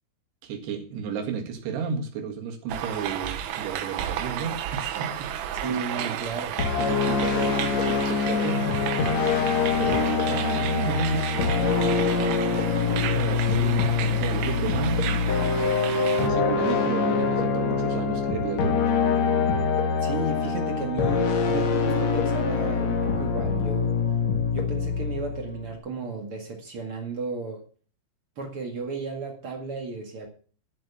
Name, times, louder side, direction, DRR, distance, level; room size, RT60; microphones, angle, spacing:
voice 1, 0.4-6.2 6.8-9.0 9.8-15.3 16.2-18.8, right 6 dB, 70° right, 3 dB, 3.8 m, -33 dB
sound 1, 2.7-16.3, right 10 dB, 85° right, 3.4 m, -33 dB
voice 2, 5.6-6.6 20.0-24.0 24.5-27.6 28.4-30.3, right 3 dB, 45° right, 3 dB, 1.9 m, -33 dB
sound 2, 6.6-25.8, left 5 dB, 60° left, 1.9 m, -24 dB
12.0 x 7.7 x 7.0 m, 0.41 s
omnidirectional pair, 5.1 m